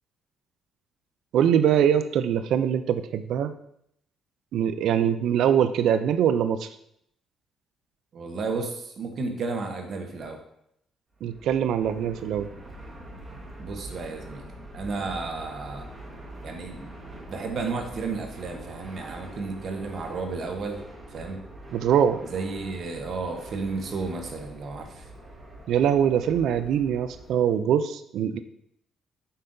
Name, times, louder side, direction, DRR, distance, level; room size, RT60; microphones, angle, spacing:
voice 1, 1.3-3.5 4.5-6.7 11.2-12.5 21.7-22.2 25.7-28.4, right 9 dB, 65° right, 11 dB, 0.3 m, -23 dB
voice 2, 8.1-10.4 13.6-14.4 14.7-15.8 16.4-20.8 21.1-21.4 22.2-25.0, right 4 dB, 45° right, 4 dB, 1.0 m, -33 dB
Fixed-wing aircraft airplane, 11.1-27.5, right 1 dB, 15° right, 1.4 m, -44 dB
7.6 x 5.6 x 2.6 m, 0.73 s
cardioid pair, 160°, 0 cm